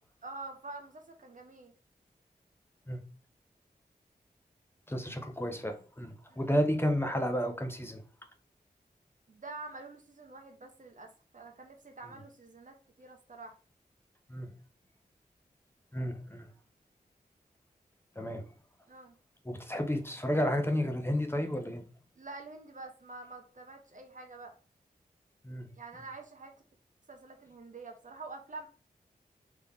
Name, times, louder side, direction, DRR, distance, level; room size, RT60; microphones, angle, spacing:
voice 1, 0.2-1.7 6.3-6.4 9.3-13.6 18.9-19.1 22.2-24.6 25.8-26.5 27.1-28.7, right 3 dB, 55° right, 0.9 m, -47 dB
voice 2, 4.9-8.0 14.3-14.5 15.9-16.5 18.2-18.4 19.4-21.8 25.4-25.7, equal, 15° left, 0.8 m, -31 dB
3.7 x 3.0 x 3.5 m
cardioid pair, 45°, 16 cm